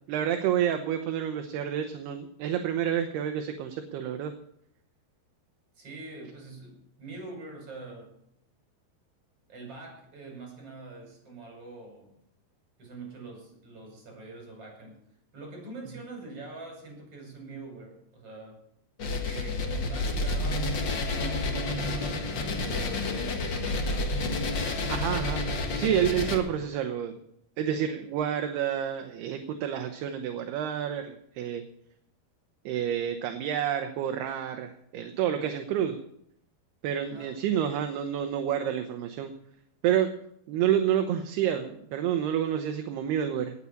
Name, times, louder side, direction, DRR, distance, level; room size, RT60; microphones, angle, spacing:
voice 1, 0.1-4.3 24.9-25.4 25.8-27.2 27.6-31.6 32.7-36.0 36.8-39.3 39.8-40.1 40.5-43.5, right 9 dB, 75° right, 6 dB, 2.9 m, -29 dB
voice 2, 5.8-8.1 9.5-12.2 12.8-15.0 15.3-18.6 19.1-20.7 21.1-24.2 37.0-37.4, right 3 dB, 35° right, 1 dB, 6.5 m, -44 dB
sound 1, 19.0-26.4, left 2 dB, 70° left, 1.1 m, -30 dB
18.0 x 8.3 x 7.2 m, 0.71 s
omnidirectional pair, 4.9 m